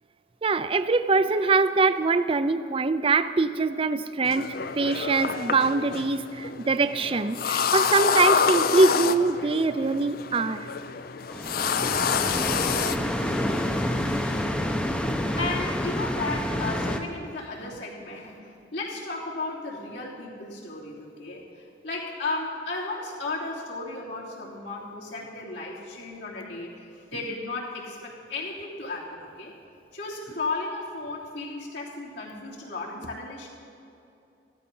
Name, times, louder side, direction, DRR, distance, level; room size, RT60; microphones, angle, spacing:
voice 1, 0.4-10.7, right 3 dB, 30° right, 13 dB, 0.4 m, -23 dB
sound 1, 4.3-14.4, left 6 dB, 55° left, 0.5 m, -28 dB
sound 2, 11.3-17.0, left 1 dB, 5° left, 0.7 m, -28 dB
voice 2, 12.1-12.5 12.9-13.4 15.3-29.5 29.9-33.5, left 3 dB, 80° left, -5 dB, 3.3 m, -35 dB
14.5 x 13.0 x 5.5 m, 2.7 s
head